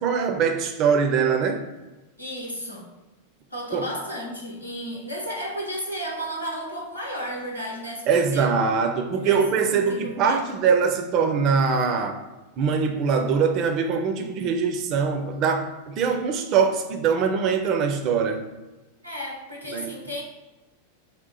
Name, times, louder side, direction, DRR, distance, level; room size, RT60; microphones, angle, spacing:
voice 1, 0.0-1.6 3.7-3.9 8.1-12.2 12.6-18.4 19.7-19.9, right 6 dB, 40° right, 0.5 m, -22 dB
voice 2, 2.2-2.9 3.5-8.5 9.1-10.4 19.0-20.2, equal, 85° left, 0.8 m, -33 dB
3.6 x 2.4 x 4.0 m
figure-of-eight pair, 90°, 0 cm